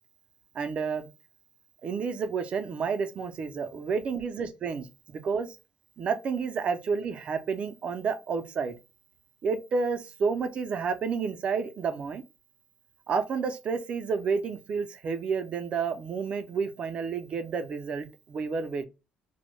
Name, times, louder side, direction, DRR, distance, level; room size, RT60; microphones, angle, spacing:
voice 1, 0.6-1.1 1.8-5.5 6.0-8.7 9.4-12.2 13.1-18.8, right 5 dB, 40° right, 0.4 m, -30 dB
2.1 x 2.0 x 3.0 m
cardioid pair, 150°, 3 cm